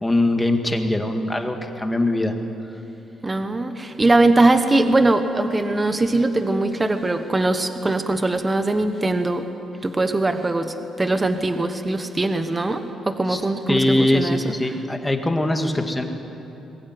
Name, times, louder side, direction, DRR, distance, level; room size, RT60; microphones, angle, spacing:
voice 1, 0.0-2.3 13.3-13.4 13.7-16.0, left 1 dB, 10° left, 4 dB, 2.1 m, -22 dB
voice 2, 3.2-9.5 9.8-14.4, right 2 dB, 15° right, 8 dB, 1.3 m, -21 dB
22.5 x 19.5 x 9.6 m, 3.0 s
cardioid pair, 125°, 0 cm